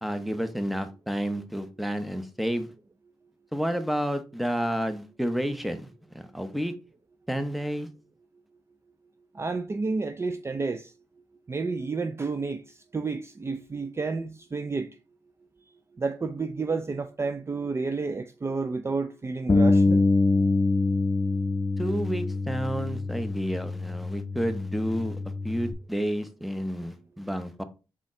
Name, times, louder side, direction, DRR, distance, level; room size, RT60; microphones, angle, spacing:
voice 1, 0.0-2.7 3.5-6.7 7.3-7.9 21.8-25.2 25.4-27.6, equal, ahead, 0.9 m, -30 dB
voice 2, 9.3-10.9 11.5-12.6 12.9-14.9 16.0-20.0, right 4 dB, 30° right, 0.5 m, -30 dB
Bass guitar, 19.5-25.7, left 3 dB, 30° left, 0.6 m, -25 dB
4.1 x 3.7 x 3.1 m
supercardioid pair, 45°, 9 cm